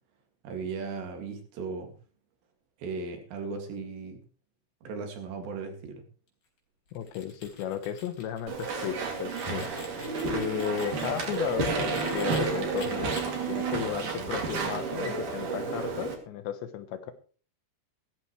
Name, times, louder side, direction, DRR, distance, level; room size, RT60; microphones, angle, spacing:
voice 1, 0.4-1.9 2.8-4.2 4.8-6.0, right 4 dB, 70° right, 3 dB, 4.4 m, -37 dB
voice 2, 6.9-9.7 10.3-13.2 13.5-17.1, left 9 dB, 75° left, 10 dB, 3.2 m, -34 dB
sound 1, 6.9-12.4 12.8-13.2, left 3 dB, 50° left, 5.5 m, -47 dB
Walk footsteps / Chatter / Squeak, 8.5-16.1, right 4 dB, 45° right, 3.7 m, -31 dB
16.5 x 14.5 x 3.2 m, 0.40 s
omnidirectional pair, 5.3 m